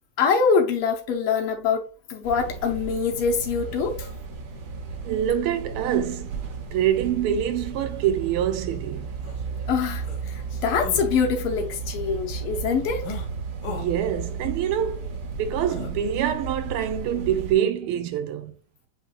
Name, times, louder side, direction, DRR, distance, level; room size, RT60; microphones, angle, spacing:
voice 1, 0.2-4.1 9.7-13.2, left 5 dB, 90° left, 1.7 m, -24 dB
sound 1, 2.2-17.5, right 5 dB, 60° right, 1.2 m, -34 dB
voice 2, 5.0-6.3 6.7-9.1 13.7-15.1 15.4-18.5, right 10 dB, 90° right, 1.5 m, -25 dB
sound 2, 9.2-9.4 10.0-10.2 10.8-11.1 13.0-13.3 13.6-13.9 15.7-15.9, left 3 dB, 65° left, 1.2 m, -36 dB
7.6 x 2.8 x 2.3 m
omnidirectional pair, 2.4 m